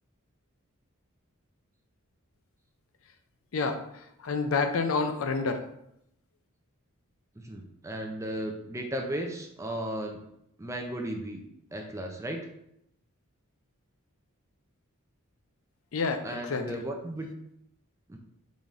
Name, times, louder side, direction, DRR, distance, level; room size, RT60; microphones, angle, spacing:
voice 1, 3.5-5.7 15.9-16.8, left 4 dB, 65° left, 6 dB, 0.5 m, -29 dB
voice 2, 7.4-10.2 10.6-11.4 11.7-12.5 16.2-17.3 18.1-18.2, right 1 dB, 15° right, 2 dB, 0.4 m, -35 dB
4.0 x 3.4 x 3.6 m, 0.77 s
head